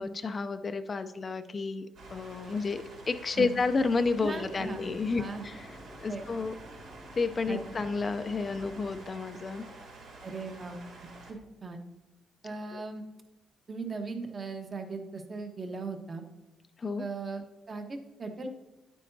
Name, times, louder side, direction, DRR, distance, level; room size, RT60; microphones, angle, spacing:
voice 1, 0.0-5.7 6.0-6.5 7.2-9.7 12.7-12.8 16.8-17.0, left 4 dB, 35° left, 9 dB, 0.4 m, -31 dB
sound 1, 1.9-11.3, right 3 dB, 90° right, 2.3 m, -49 dB
Mechanisms, 3.6-9.0, equal, 5° right, 0.8 m, -51 dB
voice 2, 4.2-4.8 5.2-5.4 6.1-6.3 7.5-7.6 10.2-11.8 12.4-13.0 13.7-16.3 17.0-18.5, right 4 dB, 35° right, 5 dB, 1.1 m, -38 dB
9.8 x 8.4 x 2.7 m, 1.0 s
cardioid pair, 90°, 0 cm